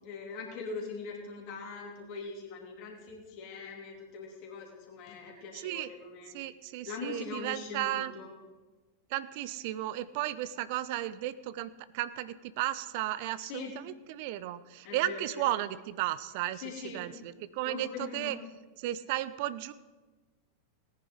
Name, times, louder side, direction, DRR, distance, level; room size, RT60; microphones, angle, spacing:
voice 1, 0.0-6.3 6.8-8.3 13.4-13.7 14.8-15.5 16.5-17.1 17.6-18.3, left 4 dB, 45° left, 0 dB, 2.8 m, -42 dB
voice 2, 5.5-5.9 6.3-8.1 9.1-16.6 16.9-18.4 18.8-19.7, right 14 dB, 50° right, 16 dB, 0.5 m, -34 dB
18.0 x 9.8 x 3.8 m, 1.2 s
figure-of-eight pair, 90°, 0 cm